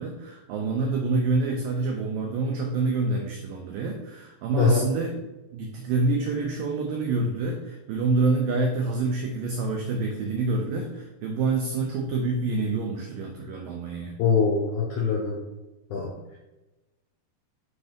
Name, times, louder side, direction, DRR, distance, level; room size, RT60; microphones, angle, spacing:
voice 1, 0.0-5.2 5.5-14.1, right 3 dB, 90° right, 3 dB, 1.9 m, -27 dB
voice 2, 14.2-15.4 15.9-16.1, left 5 dB, 90° left, -2 dB, 1.7 m, -23 dB
5.6 x 4.3 x 5.1 m, 1.1 s
omnidirectional pair, 4.8 m